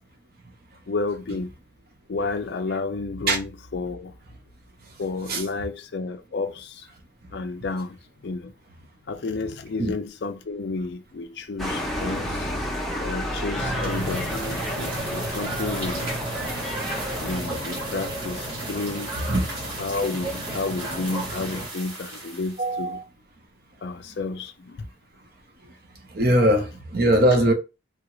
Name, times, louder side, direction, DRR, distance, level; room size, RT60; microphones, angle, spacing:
voice 1, 0.9-1.5 2.1-4.1 5.0-6.9 7.3-12.5 13.0-16.1 17.2-19.4 19.8-23.0 23.8-24.9, left 3 dB, 55° left, 0.4 m, -31 dB
sound 1, 11.6-17.4, left 1 dB, ahead, 0.7 m, -31 dB
sound 2, 13.5-21.7, right 1 dB, 25° right, 1.0 m, -33 dB
sound 3, 13.8-22.8, right 2 dB, 90° right, 1.7 m, -37 dB
voice 2, 22.6-23.0 25.6-27.5, right 1 dB, 50° right, 0.7 m, -22 dB
3.3 x 2.4 x 3.0 m
head